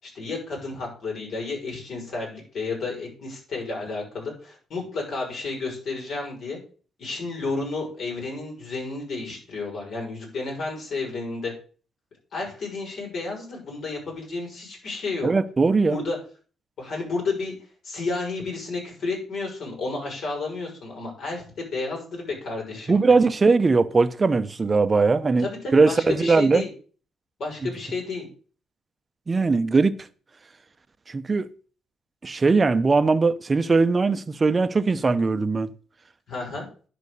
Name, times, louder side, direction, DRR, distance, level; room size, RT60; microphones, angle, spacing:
voice 1, 0.0-6.6 7.0-11.5 12.3-15.3 15.9-16.2 16.8-17.5 17.8-23.3 25.4-26.7 27.4-28.3 36.3-36.7, left 3 dB, 60° left, 6.4 m, -31 dB
voice 2, 15.2-16.0 22.9-25.5 25.7-26.6 29.3-30.0 31.1-31.5 32.2-35.7, right 4 dB, 30° right, 0.8 m, -20 dB
10.5 x 5.2 x 6.7 m
cardioid pair, 90°, 0 cm